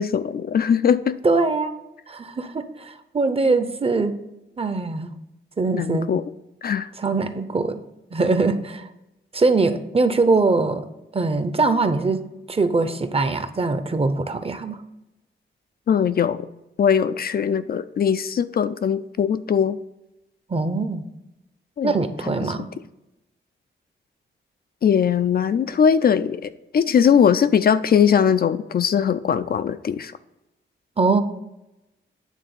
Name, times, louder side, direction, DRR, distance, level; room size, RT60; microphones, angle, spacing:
voice 1, 0.0-1.2 5.7-6.3 6.6-6.9 15.9-16.5 16.8-19.8 21.8-22.0 22.2-22.3 24.8-30.1, left 7 dB, 50° left, 12 dB, 0.4 m, -20 dB
voice 2, 1.2-1.8 2.1-4.1 4.6-5.1 5.6-6.1 7.0-7.8 8.1-8.9 9.3-10.8 11.1-14.8 20.5-21.1 21.8-22.7 31.0-31.2, right 3 dB, 30° right, 10 dB, 0.7 m, -22 dB
9.2 x 3.5 x 6.8 m, 0.91 s
cardioid pair, 90°, 20 cm